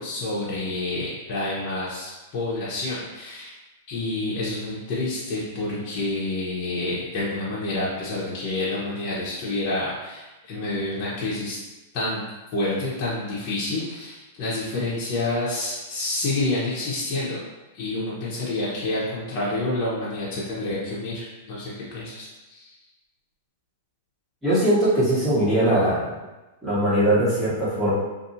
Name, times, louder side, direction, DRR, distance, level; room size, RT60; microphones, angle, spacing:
voice 1, 0.0-3.5 3.9-11.6 11.9-12.2 12.5-17.4 17.7-22.7, left 2 dB, 40° left, -8 dB, 0.9 m, -28 dB
voice 2, 24.4-26.1 26.6-27.9, right 1 dB, 5° right, -10 dB, 1.2 m, -21 dB
2.6 x 2.6 x 2.7 m, 1.1 s
hypercardioid pair, 135°, 0 cm